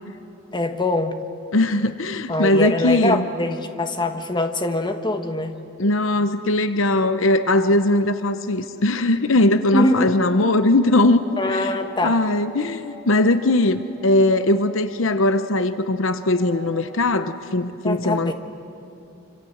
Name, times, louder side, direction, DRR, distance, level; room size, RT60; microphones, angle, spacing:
voice 1, 0.5-1.2 2.3-5.6 9.7-10.2 11.4-12.2 17.8-18.3, left 1 dB, 20° left, 6 dB, 1.3 m, -23 dB
voice 2, 1.5-3.2 5.8-11.2 11.5-11.7 12.0-18.3, left 2 dB, 65° left, 10 dB, 0.8 m, -20 dB
sound 1, 10.0-17.0, left 1 dB, 10° right, 5.4 m, -43 dB
26.5 x 26.0 x 8.0 m, 2.8 s
head